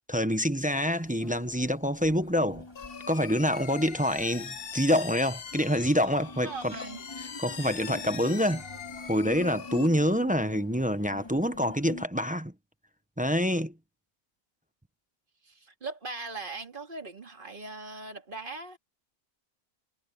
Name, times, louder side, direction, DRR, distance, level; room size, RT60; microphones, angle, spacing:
voice 1, 0.1-2.7 3.1-6.8 7.4-8.6 9.1-12.5 13.2-13.7, equal, 10° right, 0.5 m, -26 dB
sound 1, 1.0-12.0, left 2 dB, 15° left, 1.8 m, -45 dB
sound 2, 2.8-9.9, left 7 dB, 45° left, 1.0 m, -42 dB
voice 2, 6.4-7.0 15.5-18.8, right 3 dB, 35° right, 2.3 m, -39 dB
omnidirectional pair, 1.6 m